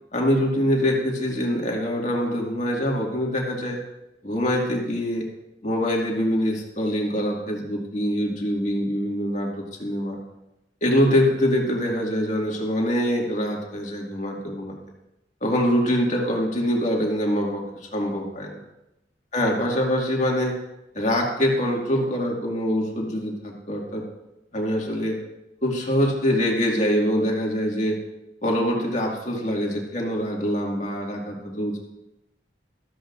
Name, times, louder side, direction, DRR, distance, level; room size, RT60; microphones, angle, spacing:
voice 1, 0.1-3.8 4.2-5.3 5.6-10.2 10.8-14.8 15.4-17.6 17.9-18.6 19.3-20.6 20.9-24.0 24.5-25.2 25.6-28.0 28.4-31.8, equal, 40° left, -1 dB, 2.1 m, -24 dB
15.0 x 13.5 x 2.6 m, 0.91 s
head